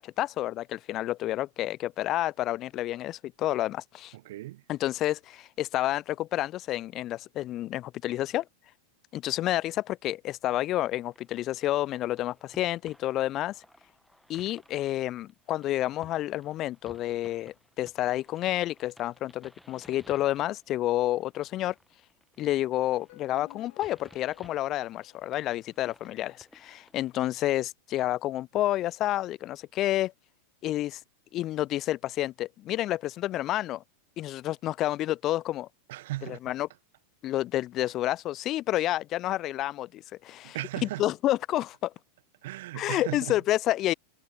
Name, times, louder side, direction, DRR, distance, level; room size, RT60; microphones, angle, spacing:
voice 1, 0.0-4.1 4.7-8.4 9.1-13.6 14.3-21.7 22.4-30.1 30.6-31.0 31.3-33.8 34.2-35.7 36.2-36.7 37.2-41.9 42.7-43.9, left 14 dB, 40° left, 0.3 m, -29 dB
voice 2, 4.1-4.6 35.9-36.4 40.5-41.0 42.4-43.3, right 17 dB, 60° right, 0.8 m, -36 dB
sound 1, 11.0-27.5, left 1 dB, ahead, 1.3 m, -58 dB
sound 2, 22.9-26.0, left 19 dB, 55° left, 4.5 m, -56 dB
figure-of-eight pair, 90°, 0 cm